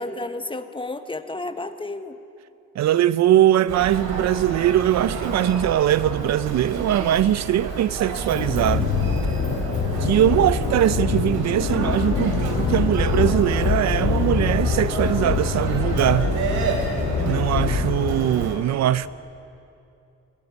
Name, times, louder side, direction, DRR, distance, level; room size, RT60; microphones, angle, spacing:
voice 1, 0.0-2.2, left 2 dB, 15° left, 1.2 m, -32 dB
voice 2, 2.8-8.9 10.0-16.3 17.2-19.1, right 12 dB, 65° right, 0.5 m, -21 dB
Human voice, 3.7-18.5, right 3 dB, 85° right, 3.5 m, -30 dB
sound 1, 8.3-18.1, left 5 dB, 85° left, 2.8 m, -24 dB
20.5 x 15.0 x 9.5 m
cardioid pair, 90°, 30 cm